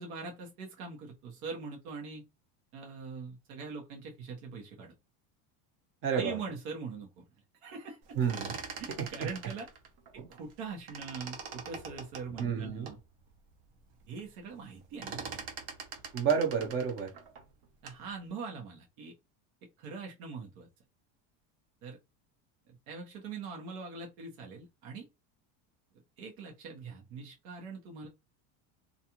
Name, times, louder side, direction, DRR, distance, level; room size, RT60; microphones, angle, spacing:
voice 1, 0.0-2.2 2.7-4.9 6.1-7.3 7.6-8.2 8.8-9.7 10.1-13.0 14.1-15.5 17.8-19.1 19.8-20.7 21.8-22.0 22.7-25.1 26.2-28.1, right 4 dB, 85° right, 1.0 m, -42 dB
voice 2, 6.0-6.4 8.1-8.6 9.0-9.1 10.2-10.3 12.4-12.9 16.1-17.1, right 7 dB, 30° right, 0.6 m, -30 dB
sound 1, 8.1-10.6 10.9-13.0 13.5-13.6 13.9-14.3 14.5-18.1, right 5 dB, 60° right, 0.8 m, -43 dB
2.5 x 2.3 x 2.8 m
cardioid pair, 165°, 41 cm